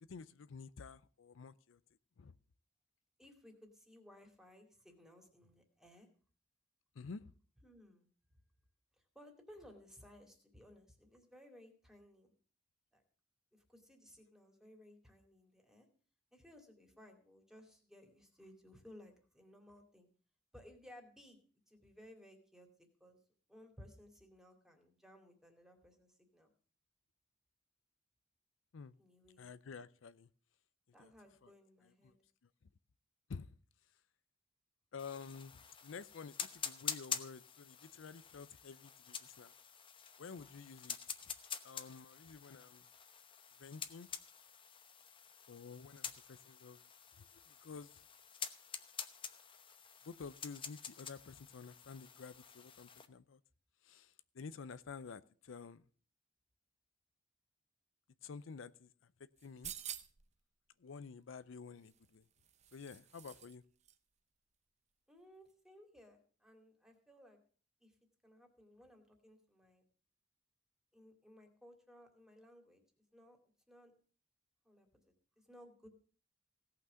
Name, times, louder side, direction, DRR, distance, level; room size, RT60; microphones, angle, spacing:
voice 1, 0.0-1.8 2.2-2.3 6.9-7.3 28.7-28.9 29.4-30.3 31.0-31.1 31.4-31.5 32.0-32.1 33.3-33.5 34.9-39.5 40.2-41.0 41.6-42.8 43.6-44.1 45.5-46.8 47.2-48.0 50.0-53.4 53.8-55.8 58.2-59.1 59.4-59.7 60.8-62.2 62.7-63.6, left 5 dB, 80° left, 0.5 m, -51 dB
voice 2, 3.2-6.1 7.6-8.1 8.9-12.3 12.9-13.0 13.5-15.9 16.3-20.1 20.5-22.7 23.0-23.2 23.5-26.5 29.0-29.4 30.9-32.1 65.1-67.4 67.8-68.0 68.2-69.8 70.9-73.4 73.7-73.9 74.6-75.9, left 1 dB, 5° right, 2.4 m, -60 dB
sound 1, 35.0-53.1, left 7 dB, 25° left, 0.9 m, -48 dB
sound 2, 59.4-60.3 61.8-63.6 63.8-63.9, right 10 dB, 35° right, 0.7 m, -49 dB
16.5 x 5.9 x 6.8 m
head